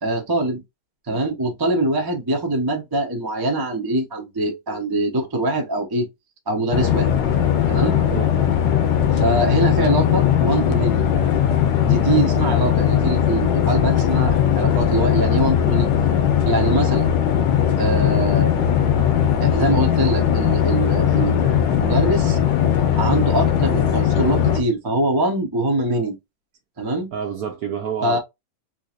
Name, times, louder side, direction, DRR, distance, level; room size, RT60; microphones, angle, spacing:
voice 1, 0.0-0.6 1.1-6.1 6.5-7.1 7.7-8.0 9.1-11.0 11.8-15.9 16.4-17.1 17.8-18.5 19.4-21.6 21.8-22.4 23.0-26.2 26.8-27.1 28.0-28.2, right 2 dB, 35° right, 0.3 m, -23 dB
sound 1, 6.7-24.6, left 9 dB, 70° left, 1.4 m, -19 dB
voice 2, 27.1-28.2, right 7 dB, 75° right, 0.9 m, -28 dB
3.9 x 2.8 x 2.5 m
omnidirectional pair, 2.2 m